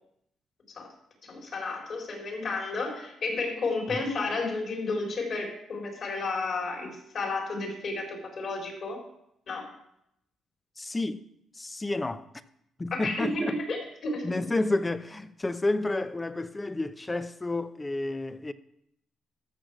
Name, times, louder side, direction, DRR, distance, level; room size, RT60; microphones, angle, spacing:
voice 1, 1.2-9.0 9.5-9.6 12.9-14.3, left 3 dB, 55° left, 4.1 m, -32 dB
voice 2, 10.8-11.3 11.5-12.3 12.8-13.6 14.2-18.5, left 2 dB, 20° left, 0.6 m, -30 dB
13.5 x 6.3 x 6.2 m
cardioid pair, 90°, 0 cm